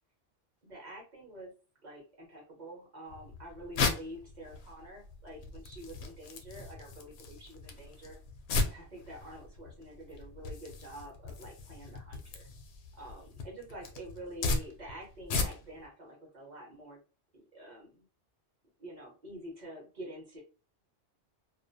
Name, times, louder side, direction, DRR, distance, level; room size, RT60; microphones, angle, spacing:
voice 1, 0.6-1.5 1.8-8.2 8.6-12.5 13.0-17.0 17.3-18.1 18.8-20.4, right 1 dB, 40° right, -1 dB, 0.9 m, -47 dB
sound 1, 3.1-15.9, left 3 dB, 65° left, 0.8 m, -37 dB
2.4 x 2.0 x 2.6 m, 0.34 s
omnidirectional pair, 1.2 m